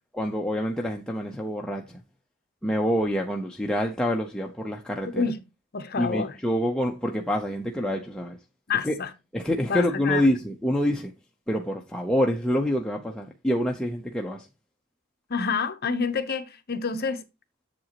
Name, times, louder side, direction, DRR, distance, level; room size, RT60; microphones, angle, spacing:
voice 1, 0.1-1.8 2.6-5.2 6.0-8.4 8.8-9.0 9.3-11.1 11.5-14.4, equal, 5° left, 0.7 m, -26 dB
voice 2, 5.7-6.3 8.7-9.1 9.7-10.3 15.3-17.2, left 5 dB, 50° left, 0.8 m, -28 dB
7.7 x 7.5 x 2.9 m
head